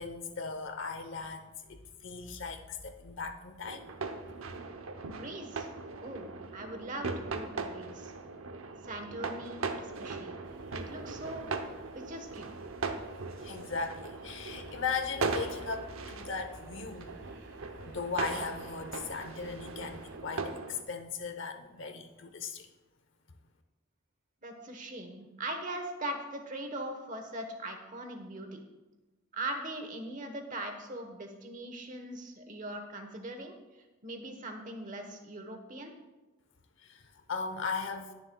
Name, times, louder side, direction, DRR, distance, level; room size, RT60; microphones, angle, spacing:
voice 1, 0.0-3.9 13.4-17.1 17.8-22.7 36.8-38.1, left 5 dB, 60° left, 7 dB, 0.8 m, -38 dB
sound 1, 3.6-20.8, right 4 dB, 75° right, 0.8 m, -39 dB
voice 2, 5.0-5.7 6.0-6.3 6.5-8.1 8.8-10.4 10.7-11.4 11.9-12.5 24.4-28.6 29.3-33.5 34.0-35.9, right 1 dB, 35° right, 5 dB, 1.1 m, -40 dB
sound 2, 10.4-20.2, right 1 dB, 60° right, 1.6 m, -54 dB
20.5 x 7.1 x 2.3 m, 1.1 s
head